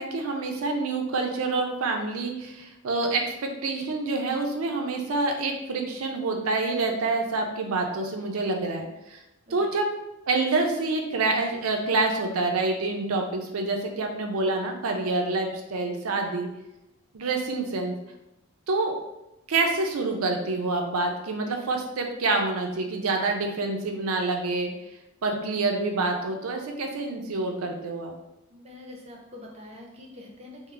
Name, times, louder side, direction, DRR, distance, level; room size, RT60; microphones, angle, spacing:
voice 1, 0.0-9.2 9.5-9.9 10.3-16.5 17.1-17.9 18.7-19.0 19.5-24.7 25.2-28.1, right 3 dB, 85° right, 3 dB, 0.5 m, -27 dB
voice 2, 28.5-30.7, left 1 dB, 30° right, -1 dB, 0.6 m, -45 dB
3.6 x 2.0 x 3.2 m, 0.92 s
head